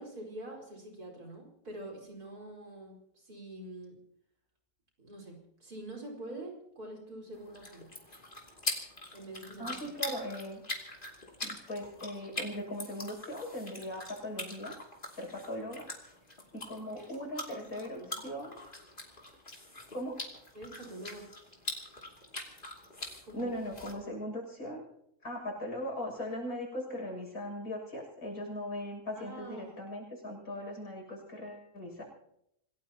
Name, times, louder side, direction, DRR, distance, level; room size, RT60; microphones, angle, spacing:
voice 1, 0.0-4.0 5.0-7.9 9.1-9.9 16.9-17.1 17.5-18.2 20.5-21.3 23.2-23.6 29.1-29.8, right 1 dB, 85° right, 0 dB, 5.2 m, -46 dB
sound 1, 7.3-23.9, left 2 dB, 35° left, 3.1 m, -43 dB
voice 2, 9.6-10.6 11.4-14.8 15.1-15.9 16.5-18.6 19.9-20.2 23.3-24.8 25.2-32.0, left 1 dB, 75° left, -1 dB, 7.7 m, -39 dB
27.0 x 18.0 x 3.0 m, 0.76 s
omnidirectional pair, 1.6 m